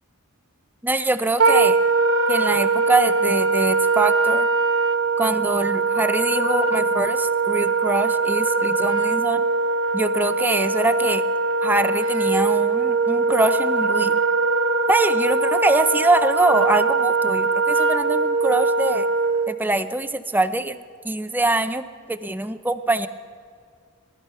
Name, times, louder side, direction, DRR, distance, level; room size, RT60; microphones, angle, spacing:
voice 1, 0.8-1.8 2.3-4.5 5.2-9.4 9.9-11.2 11.6-14.2 14.9-19.1 19.5-23.1, right 2 dB, 10° right, 11 dB, 0.5 m, -24 dB
Wind instrument woodwind instrument, 1.4-19.5, right 3 dB, 75° right, 1.1 m, -21 dB
19.0 x 12.5 x 5.5 m, 2.2 s
head